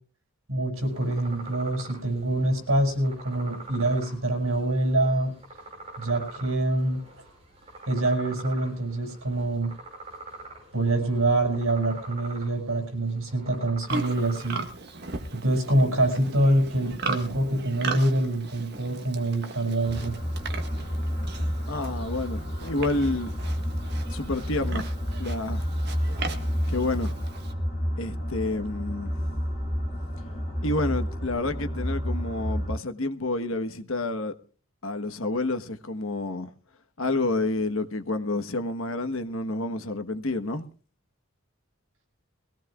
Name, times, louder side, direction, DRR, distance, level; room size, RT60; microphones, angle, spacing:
voice 1, 0.5-5.3 6.0-7.0 7.9-9.7 10.7-14.6 15.3-20.1, right 1 dB, 75° right, 6.6 m, -25 dB
sound 1, 0.8-14.5, right 2 dB, 30° right, 6.4 m, -45 dB
Livestock farm animals working animals, 13.9-27.5, right 3 dB, 50° right, 1.6 m, -38 dB
sound 2, 19.8-32.7, equal, 30° left, 6.3 m, -30 dB
voice 2, 21.7-23.3 24.1-24.9 25.2-25.7 26.7-27.2 28.0-29.3 30.6-34.3 34.8-36.5 37.0-40.6, left 2 dB, 70° left, 1.3 m, -29 dB
22.5 x 17.0 x 2.4 m
head